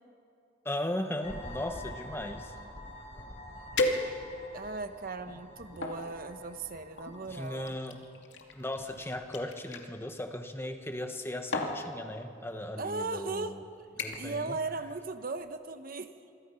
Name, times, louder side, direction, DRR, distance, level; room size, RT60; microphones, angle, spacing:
voice 1, 0.6-2.5 7.3-8.0 8.5-13.6 14.0-14.6, left 1 dB, 15° left, 6 dB, 1.4 m, -37 dB
sound 1, 1.2-7.9, left 1 dB, 35° left, 4.3 m, -47 dB
sound 2, 3.1-3.2 3.8-4.5 5.1-6.0 7.0-9.9 11.0-11.2 11.5-11.8 12.7-12.9 13.3-13.6 14.0-14.4 14.7-15.1 15.4-15.5, left 2 dB, 85° left, 2.4 m, -35 dB
voice 2, 4.5-7.8 12.8-13.6 14.0-16.1, right 3 dB, 50° right, 9 dB, 1.0 m, -37 dB
27.0 x 25.0 x 5.8 m, 2.4 s
head